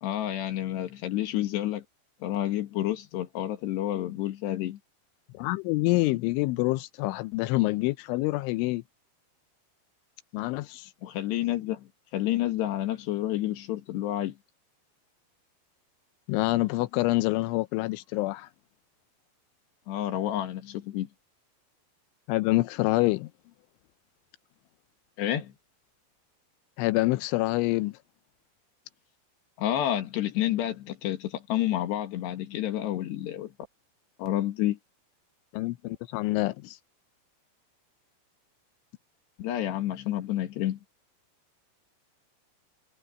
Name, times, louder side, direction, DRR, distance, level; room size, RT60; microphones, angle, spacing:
voice 1, 0.0-1.8 2.2-4.8 11.0-14.4 19.9-21.1 25.2-25.5 29.6-33.5 34.2-34.8 39.4-40.8, left 13 dB, 65° left, 3.6 m, -29 dB
voice 2, 5.3-8.8 10.3-10.9 16.3-18.5 22.3-23.3 26.8-28.0 35.5-36.8, left 20 dB, 85° left, 3.0 m, -26 dB
omnidirectional pair, 5.5 m